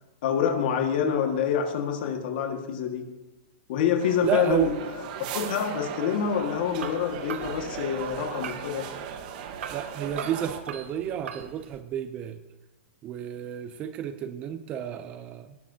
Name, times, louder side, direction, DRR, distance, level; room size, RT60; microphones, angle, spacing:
voice 1, 0.2-3.0 3.7-4.7 5.3-8.9, left 8 dB, 45° left, 5 dB, 1.7 m, -26 dB
sound 1, 4.0-10.6, right 8 dB, 40° right, 1.2 m, -37 dB
voice 2, 4.2-4.7 9.7-12.4 13.0-15.6, right 9 dB, 20° right, 10 dB, 0.5 m, -31 dB
sound 2, 6.7-11.8, right 7 dB, 75° right, 1.2 m, -41 dB
18.5 x 11.5 x 2.8 m, 1.1 s
supercardioid pair, 175°, 7 cm